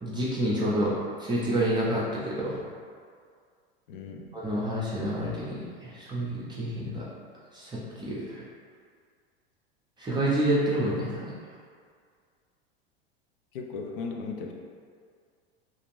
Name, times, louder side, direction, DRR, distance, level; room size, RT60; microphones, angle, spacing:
voice 1, 0.0-0.9 1.2-2.6 4.3-7.0 7.5-8.4 10.0-11.3, right 1 dB, 15° right, -7 dB, 0.5 m, -28 dB
voice 2, 3.9-4.3 13.5-14.5, left 4 dB, 60° left, 1 dB, 0.5 m, -36 dB
2.6 x 2.4 x 3.2 m, 2.1 s
hypercardioid pair, 90°, 29 cm